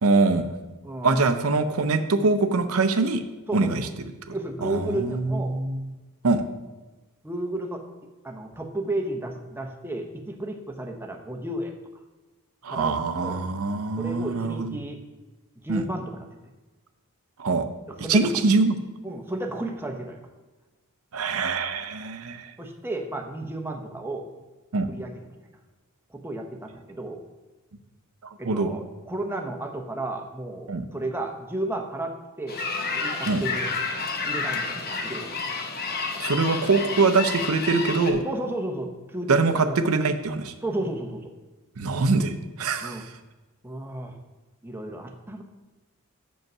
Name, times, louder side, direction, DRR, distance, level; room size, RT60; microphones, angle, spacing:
voice 1, 0.0-0.6 1.0-3.2 3.5-3.9 4.6-5.8 6.2-6.4 12.6-14.8 15.7-15.8 17.4-17.7 18.1-18.7 21.1-22.5 24.7-24.9 28.4-28.8 30.7-30.8 33.3-33.4 36.2-38.2 39.3-40.5 41.8-43.1, right 3 dB, 70° right, 9 dB, 0.6 m, -23 dB
voice 2, 0.8-1.3 3.5-3.8 4.3-5.6 7.2-7.8 8.2-11.7 12.7-13.4 14.0-15.0 15.6-16.3 17.9-18.4 19.0-20.2 22.6-24.3 24.9-25.1 26.1-27.2 28.4-32.7 32.9-33.7 34.3-35.3 38.2-39.8 40.6-41.3 42.8-43.0 43.6-44.2 44.6-45.4, right 1 dB, 10° right, 2 dB, 0.8 m, -33 dB
sound 1, 32.5-38.1, left 4 dB, 45° left, 0.8 m, -30 dB
6.6 x 5.3 x 6.0 m, 1.2 s
head